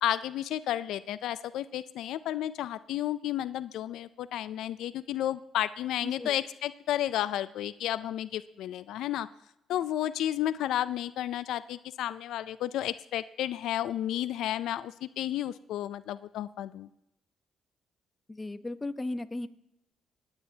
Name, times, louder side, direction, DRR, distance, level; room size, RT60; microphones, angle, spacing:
voice 1, 0.0-9.3 9.7-16.9, left 12 dB, 85° left, 15 dB, 0.3 m, -32 dB
voice 2, 6.0-6.3 18.3-19.5, left 2 dB, 20° left, 11 dB, 0.7 m, -36 dB
26.0 x 9.7 x 2.8 m, 0.84 s
cardioid pair, 90°, 0 cm